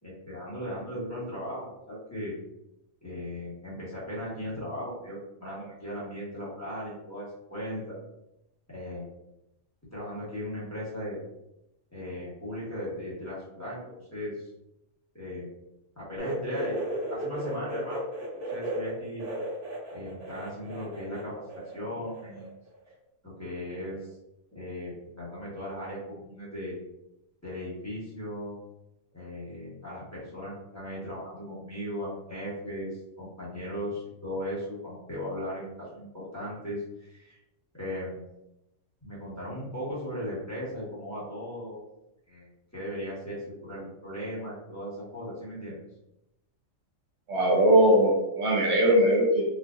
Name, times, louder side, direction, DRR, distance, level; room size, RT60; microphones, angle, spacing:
voice 1, 0.0-2.4 3.0-8.0 8.7-9.1 9.9-11.2 11.9-14.5 15.1-15.5 16.0-18.0 18.3-19.2 19.9-22.5 23.2-24.0 24.5-26.8 27.4-28.5 29.1-37.4 37.7-38.2 39.0-41.8 42.3-45.8, equal, 15° left, -9 dB, 1.2 m, -37 dB
sound 1, 16.2-21.2 21.5-22.5 22.8-22.9 23.9-24.0, right 1 dB, 45° right, 1.3 m, -35 dB
voice 2, 47.3-49.4, right 1 dB, 65° right, -1 dB, 0.9 m, -20 dB
4.4 x 2.4 x 2.5 m, 0.89 s
omnidirectional pair, 1.3 m